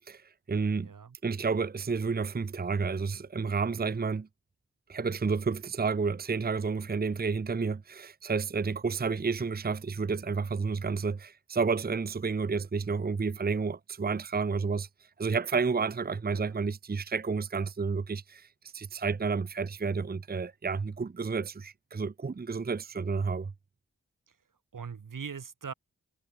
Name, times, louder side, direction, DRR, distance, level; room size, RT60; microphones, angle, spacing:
voice 1, 0.0-0.9 1.2-4.3 4.9-14.9 15.2-18.5 18.7-23.5, right 4 dB, 30° right, 0.7 m, -30 dB
voice 2, 0.8-1.2 16.3-16.6 24.7-25.7, right 6 dB, 90° right, 4.9 m, -41 dB
cardioid pair, 40°, 31 cm